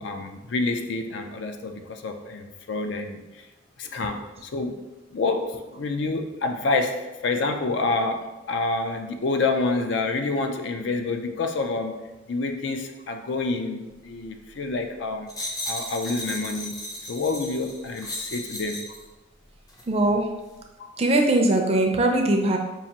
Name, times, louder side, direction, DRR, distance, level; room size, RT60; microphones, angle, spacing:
voice 1, 0.0-3.5 3.8-12.0 12.3-15.3 15.7-16.8 17.1-18.9 20.8-20.9, left 3 dB, 65° left, 5 dB, 0.4 m, -28 dB
sound 1, 15.3-19.0 19.7-19.9, left 1 dB, 20° left, 0.6 m, -35 dB
voice 2, 19.9-20.3 21.0-22.6, right 1 dB, 30° right, 2 dB, 0.4 m, -20 dB
5.5 x 2.4 x 2.9 m, 1.0 s
head